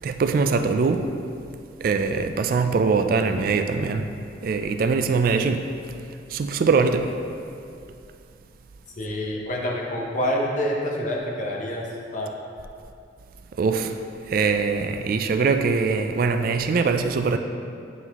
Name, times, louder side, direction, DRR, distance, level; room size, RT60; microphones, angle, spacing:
voice 1, 0.0-1.2 1.8-4.2 4.4-5.7 6.3-7.2 13.5-14.0 14.3-17.4, right 4 dB, 50° right, 0.3 m, -22 dB
voice 2, 9.0-11.9 12.1-12.3, equal, 45° left, 0.8 m, -27 dB
9.1 x 3.9 x 2.9 m
head